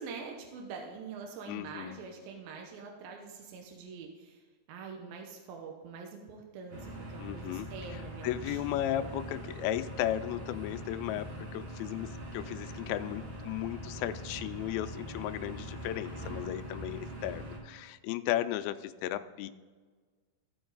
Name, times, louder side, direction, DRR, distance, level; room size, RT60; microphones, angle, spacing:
voice 1, 0.0-4.4 4.7-9.3, right 5 dB, 75° right, 2 dB, 2.5 m, -45 dB
voice 2, 1.5-2.0 7.2-19.5, left 13 dB, 80° left, 11 dB, 2.3 m, -35 dB
sound 1, 6.7-17.6, equal, 55° right, 3.0 m, -42 dB
14.5 x 5.2 x 3.9 m, 1.5 s
omnidirectional pair, 4.5 m